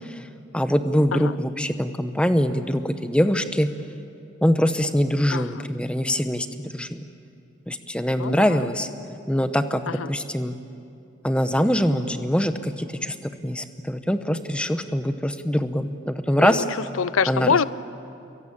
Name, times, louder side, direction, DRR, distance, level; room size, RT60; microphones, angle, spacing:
voice 1, 0.5-3.7 4.4-6.5 6.7-7.0 7.7-8.9 9.3-9.8 10.1-10.6 11.2-13.1 13.4-16.6 17.3-17.6, equal, 5° left, 9 dB, 0.9 m, -23 dB
voice 2, 5.3-5.6 8.2-8.6 9.9-10.1 16.4-16.6 17.0-17.7, left 6 dB, 90° left, 17 dB, 0.6 m, -25 dB
29.0 x 23.0 x 8.8 m, 2.6 s
head